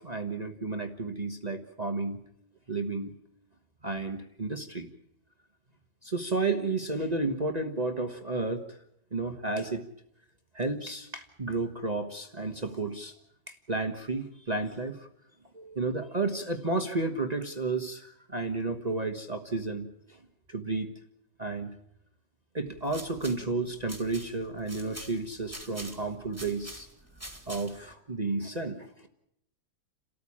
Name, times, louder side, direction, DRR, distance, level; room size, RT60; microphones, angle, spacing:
voice 1, 0.0-2.2 2.7-3.1 3.8-4.9 6.0-8.8 9.1-9.8 10.5-13.1 13.5-15.1 15.5-20.2 20.5-20.9 21.4-21.7 22.5-26.9 27.5-29.1, right 3 dB, 25° right, 5 dB, 1.2 m, -32 dB
sound 1, 22.7-27.9, right 1 dB, 10° right, 2.2 m, -46 dB
30.0 x 13.5 x 8.6 m, 0.77 s
omnidirectional pair, 1.7 m